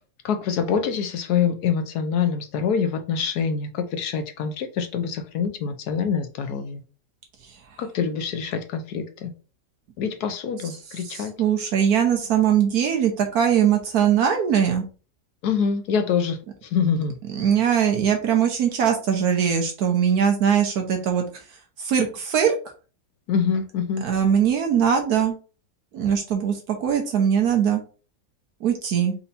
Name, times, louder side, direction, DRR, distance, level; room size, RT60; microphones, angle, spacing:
voice 1, 0.2-6.8 7.8-9.3 10.0-11.3 15.4-16.4 16.7-17.2 23.3-24.1, left 6 dB, 75° left, 1.3 m, -25 dB
voice 2, 11.1-14.8 17.4-21.2 21.8-22.5 24.0-25.3 25.9-27.8 28.6-29.2, right 8 dB, 70° right, 1.3 m, -21 dB
4.4 x 2.7 x 4.0 m
omnidirectional pair, 1.7 m